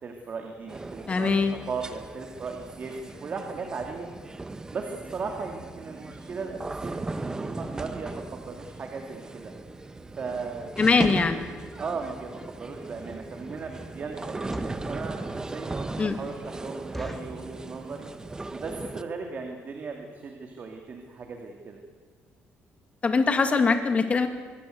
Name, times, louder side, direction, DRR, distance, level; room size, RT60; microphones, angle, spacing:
voice 1, 0.0-4.1 4.5-9.5 10.2-10.7 11.8-18.1 18.5-21.8, right 4 dB, 40° right, 3 dB, 2.7 m, -37 dB
sound 1, 0.7-19.0, right 2 dB, 15° right, 1.1 m, -37 dB
voice 2, 1.1-1.5 10.8-11.4 16.0-16.2 23.0-24.3, left 4 dB, 30° left, 7 dB, 2.5 m, -22 dB
sound 2, 14.5-14.9 15.5-15.6 15.9-16.0 16.3-16.4 16.9-17.4 18.0-18.3 18.6-18.7 18.9-19.2 19.7-19.8 20.0-20.2 20.6-20.7 20.9-21.0, left 1 dB, 5° left, 1.6 m, -41 dB
25.0 x 22.5 x 8.0 m, 1.6 s
cardioid pair, 135°, 4 cm